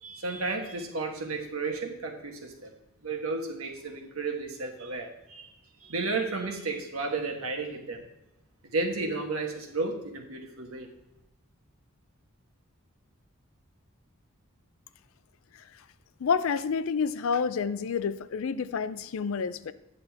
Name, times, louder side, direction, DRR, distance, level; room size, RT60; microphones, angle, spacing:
voice 1, 0.0-2.7 3.0-5.5 5.8-8.0 8.6-10.9, right 3 dB, 85° right, 3 dB, 1.3 m, -33 dB
voice 2, 16.2-19.7, left 6 dB, 70° left, 15 dB, 0.4 m, -29 dB
9.3 x 6.7 x 3.4 m, 0.91 s
head